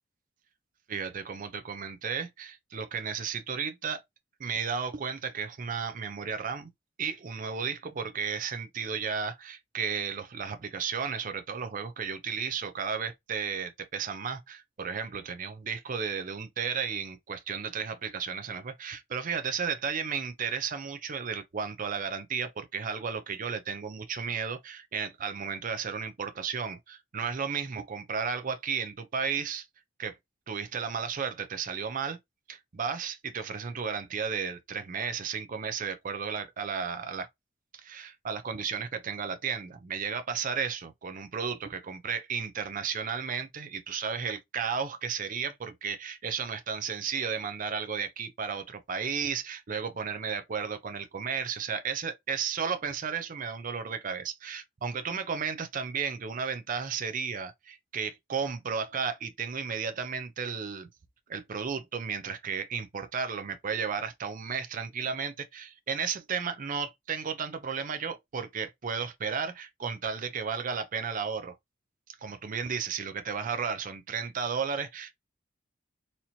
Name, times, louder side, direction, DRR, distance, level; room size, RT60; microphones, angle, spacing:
voice 1, 0.9-4.0 4.4-6.7 7.0-29.7 30.0-30.1 30.5-32.2 32.5-37.3 37.7-60.9 61.3-71.5 72.2-75.1, right 6 dB, 40° right, 0.5 m, -33 dB
4.2 x 2.9 x 2.7 m
head